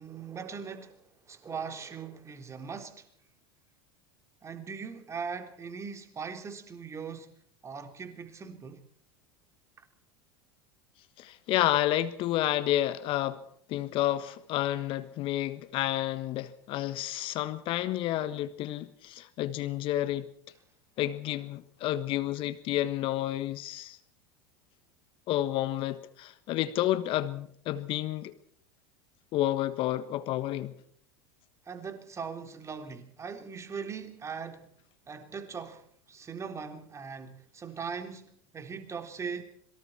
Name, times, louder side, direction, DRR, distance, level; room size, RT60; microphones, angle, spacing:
voice 1, 0.0-3.1 4.4-8.8 9.8-9.9 31.7-34.7 35.1-39.4, right 5 dB, 25° right, 3.6 m, -40 dB
voice 2, 11.2-13.4 13.7-20.3 21.0-24.0 25.3-28.3 29.3-30.7, left 14 dB, 50° left, 1.4 m, -30 dB
26.5 x 23.5 x 4.4 m
hypercardioid pair, 85°, 12 cm